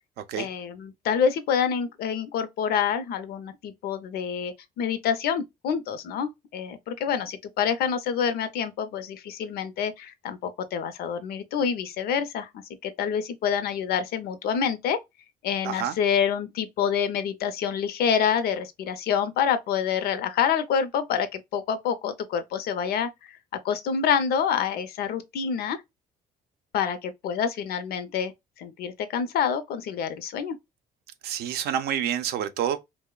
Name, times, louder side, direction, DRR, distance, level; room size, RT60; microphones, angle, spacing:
voice 1, 0.4-15.0 15.4-23.3 23.6-25.8 26.7-28.3 28.6-30.6, left 7 dB, 65° left, 0.5 m, -27 dB
voice 2, 15.6-16.0 31.2-32.8, right 9 dB, 70° right, 0.5 m, -28 dB
2.9 x 2.0 x 2.2 m
cardioid pair, 110°, 17 cm